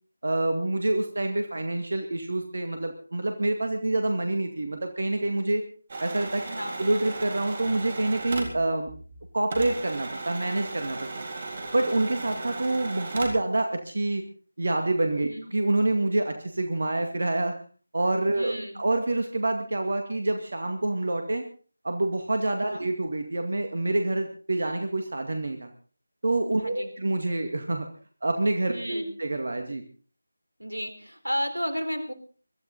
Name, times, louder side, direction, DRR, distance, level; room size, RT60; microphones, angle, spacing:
voice 1, 0.2-5.6 6.0-6.4 6.8-8.9 9.3-11.1 11.7-14.2 14.6-17.6 17.9-21.4 21.8-25.7 26.2-27.9 28.2-29.8, right 2 dB, 50° right, 5 dB, 2.2 m, -27 dB
sound 1, 5.9-9.2 9.5-13.5, right 3 dB, 35° right, 3.8 m, -36 dB
voice 2, 6.4-6.8 15.3-15.5 18.3-18.8 22.6-22.9 26.6-26.9 28.7-29.1 30.6-32.1, equal, 85° right, 8 dB, 3.7 m, -33 dB
23.5 x 13.0 x 4.1 m, 0.41 s
figure-of-eight pair, 165°, 0 cm